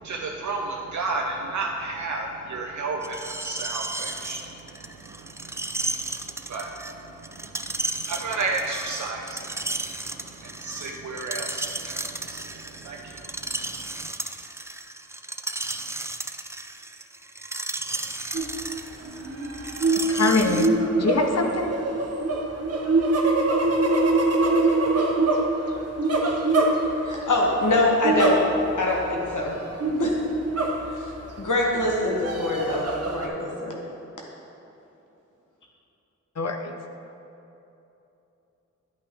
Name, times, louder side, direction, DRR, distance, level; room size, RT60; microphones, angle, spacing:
voice 1, 0.0-14.1, right 3 dB, 75° right, 1 dB, 0.6 m, -33 dB
Screech, 3.0-20.7, right 2 dB, 10° right, 0.3 m, -34 dB
sound 1, 18.3-18.6 19.0-27.3 28.0-28.8 29.1-29.2 29.8-31.2 31.8-33.3, right 2 dB, 55° right, 0.9 m, -24 dB
voice 2, 20.1-20.7 21.0-21.7 36.4-36.7, left 3 dB, 60° left, 5 dB, 0.7 m, -23 dB
voice 3, 27.0-28.5 28.8-29.6 30.0-30.2 30.9-31.1 31.4-33.8, left 2 dB, 85° left, -2 dB, 1.1 m, -24 dB
10.5 x 5.7 x 3.4 m, 2.9 s
wide cardioid pair, 65°, 30 cm